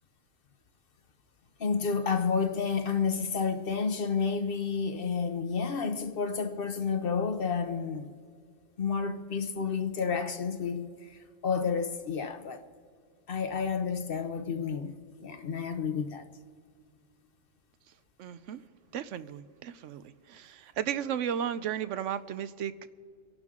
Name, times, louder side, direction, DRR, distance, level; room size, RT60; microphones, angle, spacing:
voice 1, 1.6-8.1 8.8-12.6 13.3-14.9 15.2-16.3, left 5 dB, 50° left, 0.9 m, -30 dB
voice 2, 18.2-18.6 18.9-20.0 20.3-22.9, right 9 dB, 75° right, 1.0 m, -34 dB
27.0 x 11.5 x 3.7 m
omnidirectional pair, 1.3 m